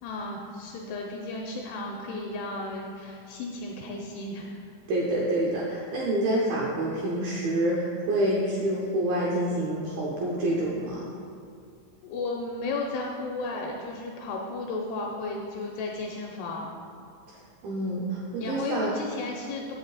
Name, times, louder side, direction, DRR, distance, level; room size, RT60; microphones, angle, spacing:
voice 1, 0.0-4.7 12.0-16.7 18.4-19.7, left 2 dB, 85° left, 0 dB, 2.4 m, -34 dB
voice 2, 4.9-11.1 17.3-17.4 17.6-18.9, right 1 dB, 80° right, -5 dB, 2.1 m, -27 dB
7.9 x 7.9 x 4.0 m, 2.4 s
omnidirectional pair, 5.3 m